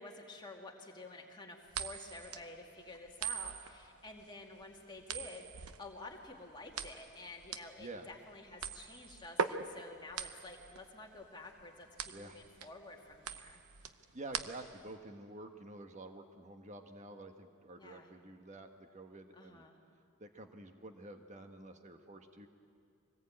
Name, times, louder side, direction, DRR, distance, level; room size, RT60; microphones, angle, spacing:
voice 1, 0.0-13.6 17.7-18.1 19.3-19.8, left 2 dB, 20° left, 0 dB, 2.3 m, -50 dB
sound 1, 1.7-14.9, right 6 dB, 85° right, 0.9 m, -42 dB
voice 2, 14.1-19.6 20.2-22.5, right 2 dB, 30° right, 6 dB, 1.4 m, -49 dB
24.5 x 19.0 x 8.8 m, 2.5 s
head